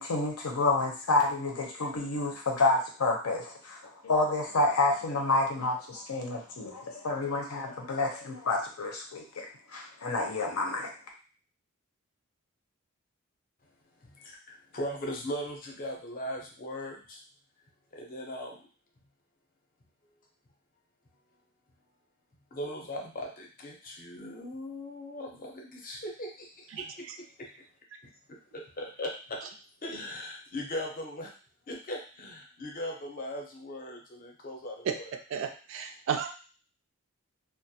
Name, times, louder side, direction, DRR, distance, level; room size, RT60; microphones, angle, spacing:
voice 1, 0.0-9.5 9.7-10.9, left 2 dB, 85° left, 1 dB, 0.6 m, -29 dB
voice 2, 14.0-17.2 17.9-18.6 22.5-27.5 28.5-29.4 29.8-31.3 31.7-35.2, left 1 dB, 40° left, 0 dB, 0.5 m, -39 dB
voice 3, 26.8-27.2 34.9-35.0 35.3-36.3, right 7 dB, 60° right, 6 dB, 0.3 m, -33 dB
2.3 x 2.0 x 2.7 m, 0.38 s
head